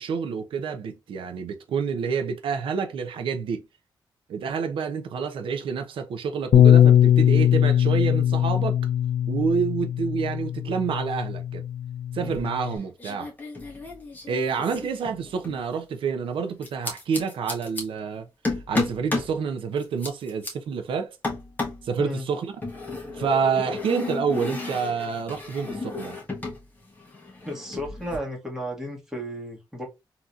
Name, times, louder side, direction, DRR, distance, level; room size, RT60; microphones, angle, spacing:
voice 1, 0.0-3.6 4.3-8.8 9.3-11.6 12.1-13.3 14.3-18.3 18.7-21.2 21.8-22.5 23.1-26.2, right 6 dB, 90° right, 0.7 m, -28 dB
Bass guitar, 6.5-12.8, left 10 dB, 65° left, 0.4 m, -20 dB
sound 1, 12.2-12.7 13.0-15.6 16.6-17.8 18.4-19.3 19.8-20.5 21.2-21.9 22.6-26.6 26.9-28.2, left 3 dB, 20° left, 1.4 m, -33 dB
voice 2, 27.4-29.8, equal, 5° right, 1.7 m, -33 dB
3.9 x 2.9 x 2.5 m
wide cardioid pair, 110°, 9 cm